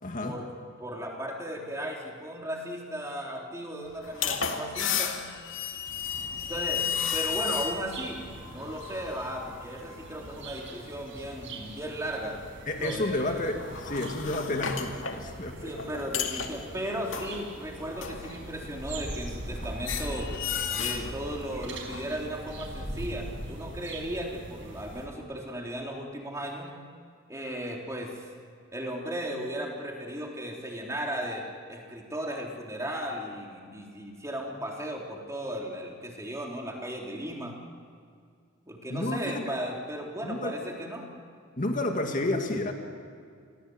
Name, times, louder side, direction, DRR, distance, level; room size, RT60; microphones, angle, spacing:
voice 1, 0.0-0.4 12.7-15.7 38.9-39.4 40.2-40.6 41.6-42.7, left 2 dB, 40° left, 3 dB, 2.2 m, -30 dB
voice 2, 0.8-5.2 6.5-6.9 7.1-8.2 8.5-12.4 12.8-13.5 15.6-20.3 20.8-26.7 27.3-28.3 28.7-37.6 38.7-41.1, equal, 15° right, 0 dB, 3.5 m, -36 dB
sound 1, 3.9-11.9 12.2-12.5 13.3-19.5 19.8-22.2, left 7 dB, 80° left, 2.2 m, -34 dB
sound 2, 5.9-25.1, right 1 dB, 65° right, 5.3 m, -42 dB
29.5 x 23.0 x 7.9 m, 2.2 s
head